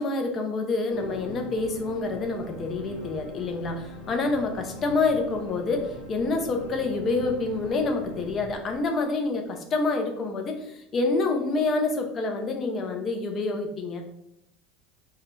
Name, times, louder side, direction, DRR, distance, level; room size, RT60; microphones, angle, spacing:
voice 1, 0.0-14.1, left 3 dB, 35° left, 4 dB, 0.5 m, -27 dB
sound 1, 0.9-9.3, equal, 65° left, 0.9 m, -41 dB
2.2 x 2.1 x 3.0 m, 0.82 s
hypercardioid pair, 95°, 0 cm